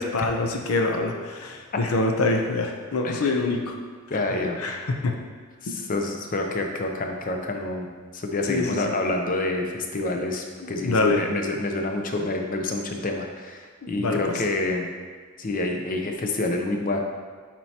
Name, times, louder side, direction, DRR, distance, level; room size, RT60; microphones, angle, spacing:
voice 1, 0.0-3.7 4.6-5.1 5.7-5.8 8.5-8.8 10.6-11.2 14.0-14.2, left 3 dB, 85° left, 3 dB, 0.6 m, -25 dB
voice 2, 4.1-4.6 5.6-7.9 8.1-14.9 15.4-17.1, left 2 dB, 40° left, 3 dB, 0.6 m, -28 dB
7.2 x 4.6 x 2.8 m, 1.5 s
head